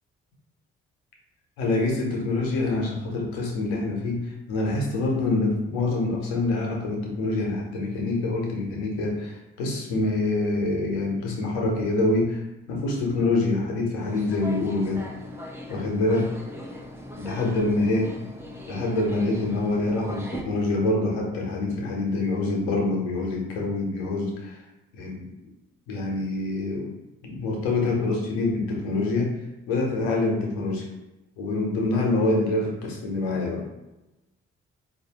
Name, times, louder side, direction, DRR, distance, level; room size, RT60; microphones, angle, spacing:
voice 1, 1.6-15.1 15.7-16.3 17.2-18.1 18.7-24.6 24.9-25.3 25.9-26.9 27.2-29.4 29.7-30.9 31.4-33.6, left 2 dB, 85° left, -1 dB, 0.8 m, -26 dB
sound 1, 14.0-20.4, left 1 dB, 10° right, 0.7 m, -39 dB
4.0 x 2.4 x 2.8 m, 0.97 s
hypercardioid pair, 45°, 31 cm